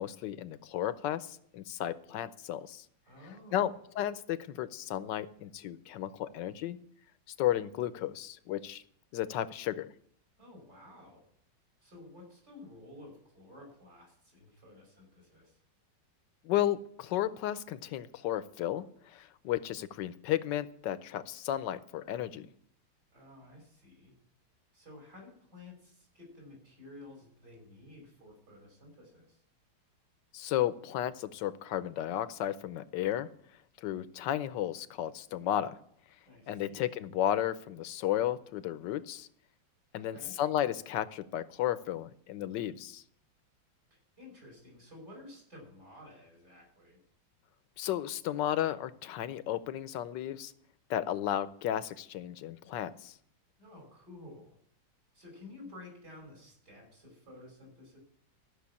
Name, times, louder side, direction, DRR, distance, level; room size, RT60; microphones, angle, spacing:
voice 1, 0.0-2.8 3.5-6.8 7.4-8.8 9.1-9.9 16.4-22.5 30.3-33.3 33.8-35.8 36.5-39.3 39.9-43.0 47.8-50.5 50.9-53.2, left 12 dB, 75° left, 14 dB, 1.3 m, -33 dB
voice 2, 3.1-3.7 10.4-11.3 11.8-15.6 23.1-24.1 24.7-29.4 36.3-36.9 39.9-40.3 44.2-47.0 53.6-54.6 55.1-58.0, left 2 dB, 60° right, -1 dB, 6.1 m, -52 dB
13.5 x 6.3 x 8.4 m, 0.65 s
omnidirectional pair, 2.0 m